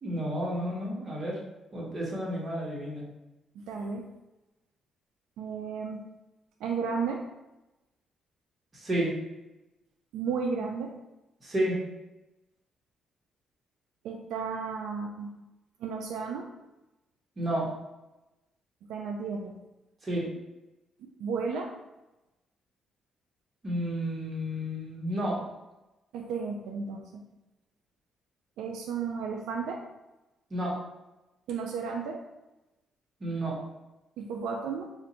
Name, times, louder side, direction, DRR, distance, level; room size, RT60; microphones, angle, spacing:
voice 1, 0.0-1.4 1.7-3.1 8.7-9.1 11.4-11.8 17.4-17.7 20.0-20.3 23.6-25.4 30.5-30.8 33.2-33.6, right 1 dB, 30° right, -5 dB, 1.3 m, -31 dB
voice 2, 3.6-4.0 5.4-6.0 6.6-7.2 10.1-10.9 14.0-15.3 15.8-16.5 18.9-19.5 21.2-21.7 26.1-27.2 28.6-29.8 31.5-32.2 34.2-34.9, right 5 dB, 85° right, 1 dB, 0.3 m, -33 dB
2.5 x 2.5 x 4.2 m, 0.99 s
cardioid pair, 90°, 0 cm